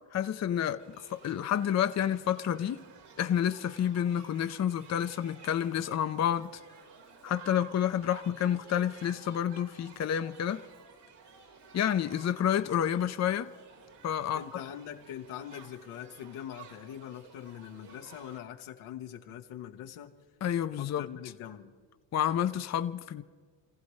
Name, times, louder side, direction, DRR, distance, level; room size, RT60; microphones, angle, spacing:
voice 1, 0.1-0.8 1.1-2.8 3.2-6.5 7.2-10.6 11.7-13.5 14.0-14.4 20.4-21.1 22.1-23.2, left 9 dB, 35° left, 0.6 m, -29 dB
Shout / Human group actions, 0.8-18.4, right 6 dB, 55° right, 2.4 m, -53 dB
voice 2, 14.3-20.1 20.8-21.7, left 10 dB, 90° left, 1.3 m, -43 dB
29.5 x 15.0 x 3.2 m
supercardioid pair, 85°, 49 cm